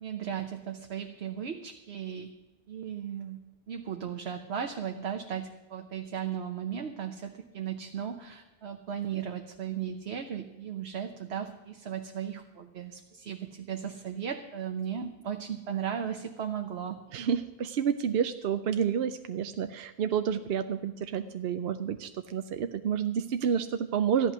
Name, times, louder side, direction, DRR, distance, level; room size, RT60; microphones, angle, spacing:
voice 1, 0.0-2.3 2.7-3.4 3.7-17.0, right 8 dB, 90° right, 4 dB, 1.2 m, -36 dB
voice 2, 17.1-24.3, right 8 dB, 70° right, 9 dB, 0.8 m, -29 dB
14.0 x 11.0 x 6.2 m, 1.1 s
omnidirectional pair, 1.0 m